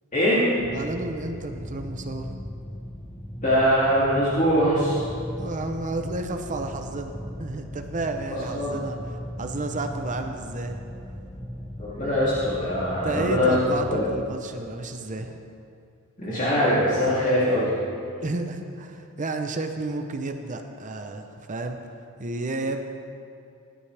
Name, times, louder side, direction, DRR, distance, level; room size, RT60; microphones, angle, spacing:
voice 1, 0.1-0.4 3.4-5.0 8.3-8.8 11.8-13.6 13.9-14.0 16.2-17.7, equal, 35° left, -10 dB, 2.6 m, -22 dB
sound 1, 0.6-14.1, equal, 10° left, 0.9 m, -38 dB
voice 2, 0.7-2.3 5.4-9.0 9.4-10.7 13.0-15.4 18.2-21.8 22.2-22.8, right 2 dB, 35° right, 5 dB, 0.7 m, -31 dB
17.5 x 11.5 x 3.4 m, 2.5 s
head